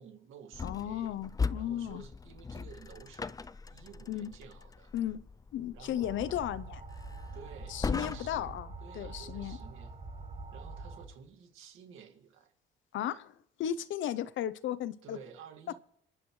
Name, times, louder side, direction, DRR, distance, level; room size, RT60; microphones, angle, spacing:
voice 1, 0.0-1.2 1.5-3.4 3.7-4.9 5.7-6.1 7.3-8.5 8.8-9.9 10.5-12.5 15.0-15.8, right 7 dB, 90° right, 2.1 m, -52 dB
sound 1, 0.5-8.6, left 4 dB, 20° left, 0.4 m, -39 dB
voice 2, 0.6-2.0 4.1-4.3 4.9-5.2 5.5-6.8 7.7-9.6 12.9-15.2, left 11 dB, 75° left, 0.7 m, -35 dB
sound 2, 6.0-11.1, right 3 dB, 35° right, 5.0 m, -45 dB
25.5 x 10.5 x 3.2 m
cardioid pair, 90°, 20 cm